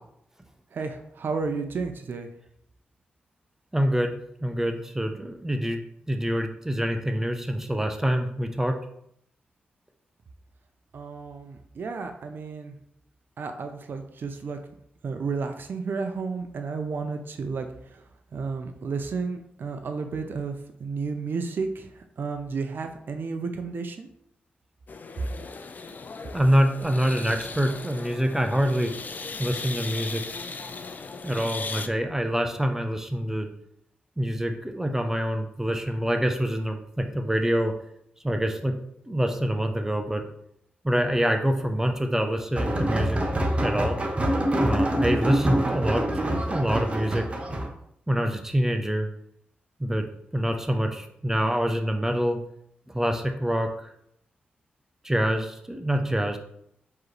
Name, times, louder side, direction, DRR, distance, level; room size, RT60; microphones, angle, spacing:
voice 1, 0.7-2.3 10.9-12.8 13.4-14.6 15.0-24.1, right 4 dB, 60° right, 5 dB, 0.5 m, -32 dB
voice 2, 3.7-4.1 4.4-5.8 6.1-8.8 26.3-28.9 29.4-30.2 31.2-33.5 34.2-37.8 38.2-38.7 39.1-40.2 40.8-43.2 43.6-44.0 44.6-46.0 46.5-47.3 48.1-49.1 49.8-50.1 50.3-52.4 52.9-53.9 55.0-56.4, equal, 10° right, 5 dB, 0.6 m, -25 dB
sound 1, 24.9-31.9, left 4 dB, 50° left, 0.4 m, -38 dB
sound 2, 42.5-47.7, right 1 dB, 30° right, 0.9 m, -25 dB
4.6 x 3.0 x 3.1 m, 0.73 s
cardioid pair, 55°, 4 cm